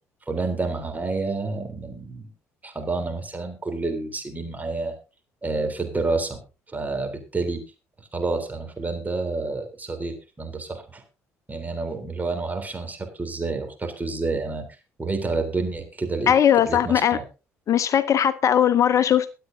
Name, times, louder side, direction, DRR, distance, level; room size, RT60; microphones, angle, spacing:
voice 1, 0.3-2.3 2.6-4.9 5.4-6.4 6.7-7.6 8.0-11.0 11.5-14.6 15.0-17.2, right 3 dB, 20° right, 3.5 m, -29 dB
voice 2, 16.3-17.2 17.7-19.3, left 9 dB, 45° left, 0.7 m, -19 dB
23.0 x 8.6 x 2.7 m
hypercardioid pair, 50°, 7 cm